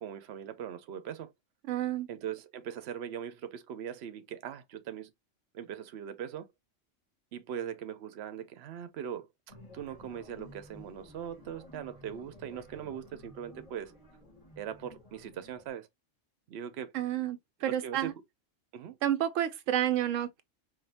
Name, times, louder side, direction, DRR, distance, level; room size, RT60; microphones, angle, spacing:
voice 1, 0.0-1.3 2.1-5.1 5.5-6.5 7.3-13.9 14.6-15.9 16.5-16.9 17.7-18.2 18.7-19.0, right 9 dB, 60° right, 0.9 m, -40 dB
voice 2, 1.7-2.1 16.9-18.1 19.0-20.4, right 11 dB, 85° right, 1.0 m, -30 dB
sound 1, 9.5-15.7, left 1 dB, 30° left, 1.7 m, -53 dB
5.1 x 2.3 x 2.8 m
omnidirectional pair, 1.3 m